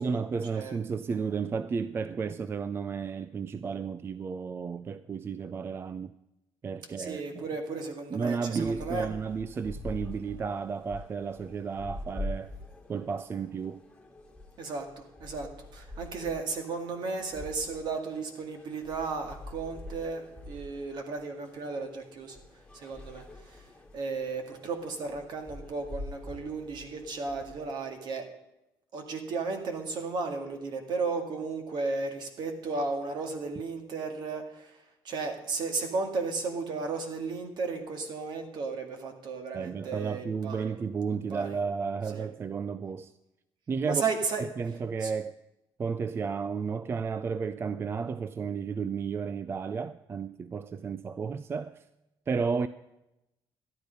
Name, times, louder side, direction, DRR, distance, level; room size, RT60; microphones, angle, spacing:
voice 1, 0.0-6.1 6.6-7.5 8.1-12.5 12.9-13.8 39.5-43.1 43.7-44.0 44.6-45.4 45.8-51.9 52.3-52.7, right 5 dB, 30° right, 0.4 m, -33 dB
voice 2, 7.0-9.1 14.6-22.4 22.7-23.6 23.9-28.3 28.9-40.7 41.3-41.6 42.1-42.3 43.8-44.4 45.0-45.1, right 4 dB, 60° right, 2.1 m, -34 dB
sound 1, 8.6-27.7, left 1 dB, 10° left, 1.6 m, -45 dB
13.0 x 10.5 x 5.3 m
cardioid pair, 130°, 9 cm